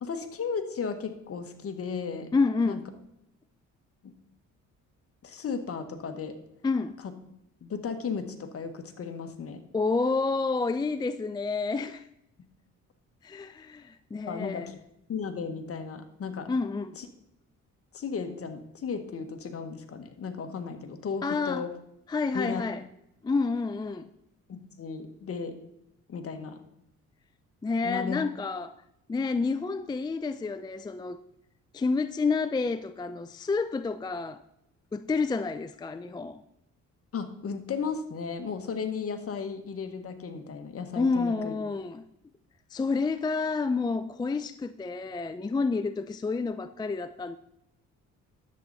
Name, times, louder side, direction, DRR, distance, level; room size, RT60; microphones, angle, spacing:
voice 1, 0.0-2.3 2.6-2.8 4.0-4.1 5.2-6.3 7.6-9.6 14.3-14.7 15.1-16.5 17.0-17.1 17.9-21.7 22.3-22.6 24.5-25.5 26.1-26.6 27.8-28.2 37.1-41.5, left 5 dB, 50° left, 1.3 m, -35 dB
voice 2, 2.3-2.9 6.6-7.0 9.7-12.1 13.2-14.7 16.5-17.0 21.2-21.7 22.1-22.8 23.2-24.1 27.6-28.7 29.1-31.2 31.7-34.4 34.9-36.4 41.0-42.0 42.7-47.4, left 4 dB, 15° left, 0.3 m, -29 dB
10.5 x 7.8 x 4.0 m
cardioid pair, 90°, 30 cm